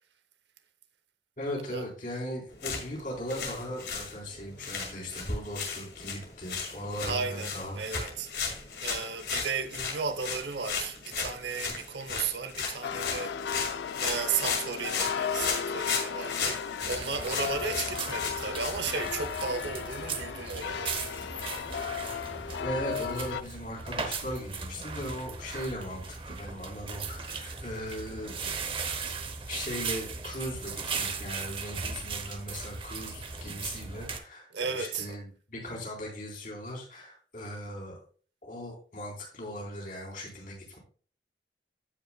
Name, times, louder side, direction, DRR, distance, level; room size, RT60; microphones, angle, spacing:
voice 1, 1.4-7.8 22.6-28.5 29.5-38.0 38.4-40.8, equal, 50° left, 3.7 m, -38 dB
sound 1, 2.5-19.3, left 5 dB, 70° left, 2.2 m, -36 dB
voice 2, 7.0-8.3 8.8-13.4 14.0-21.0 34.5-35.1, right 5 dB, 85° right, 0.8 m, -34 dB
sound 2, 12.8-23.4, left 7 dB, 85° left, 0.4 m, -35 dB
sound 3, 16.8-34.2, right 5 dB, 30° right, 0.8 m, -38 dB
16.0 x 5.4 x 2.3 m
head